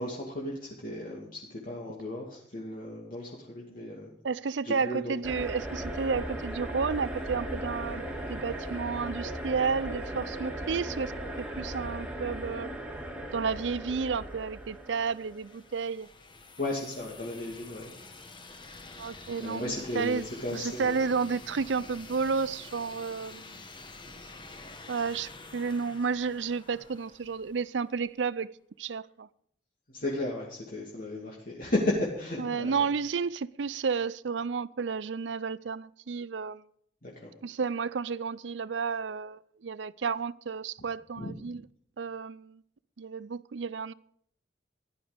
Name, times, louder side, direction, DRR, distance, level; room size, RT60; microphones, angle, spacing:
voice 1, 0.0-4.1 4.6-5.1 16.6-17.9 19.4-20.9 29.9-32.8 37.0-37.3 41.2-41.3, left 1 dB, 50° left, 2.5 m, -34 dB
voice 2, 4.2-12.7 13.3-16.1 18.9-23.6 24.9-28.5 28.8-29.3 32.4-36.6 37.4-41.6 42.0-42.6 43.0-43.9, right 5 dB, 85° right, 0.5 m, -32 dB
sound 1, 5.2-15.5, right 1 dB, 5° right, 2.0 m, -37 dB
sound 2, 14.2-27.9, left 3 dB, 25° left, 1.3 m, -48 dB
15.5 x 11.5 x 5.2 m
head